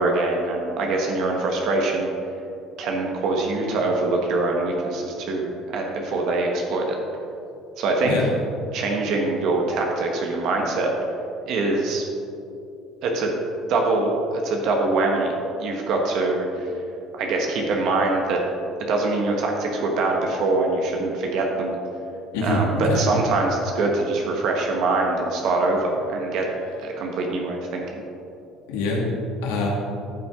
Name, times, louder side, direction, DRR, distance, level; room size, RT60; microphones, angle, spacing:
voice 1, 0.0-2.1 2.8-7.0 7.8-8.2 8.7-10.9 11.5-12.0 13.0-13.3 13.7-15.3 15.6-16.5 17.1-18.4 18.9-21.8 22.4-26.5 26.8-28.0, right 3 dB, 65° right, 1 dB, 1.2 m, -23 dB
voice 2, 22.3-23.0 28.7-29.1 29.4-29.7, left 2 dB, 90° left, -2 dB, 1.7 m, -24 dB
12.0 x 6.1 x 3.7 m, 2.7 s
supercardioid pair, 90°, 0 cm